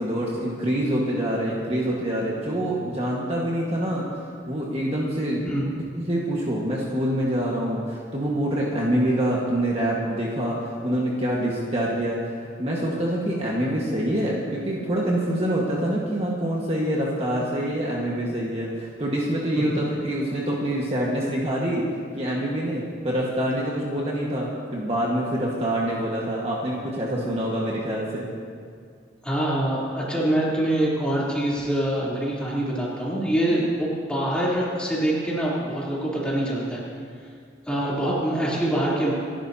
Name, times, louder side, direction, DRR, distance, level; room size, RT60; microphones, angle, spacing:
voice 1, 0.0-4.0 4.5-5.5 6.0-12.2 12.6-21.9 22.1-28.3, right 1 dB, 30° right, -4 dB, 1.6 m, -26 dB
voice 2, 29.2-36.8 37.7-39.1, right 1 dB, 5° left, -7 dB, 3.4 m, -25 dB
28.0 x 11.5 x 2.9 m, 2.1 s
head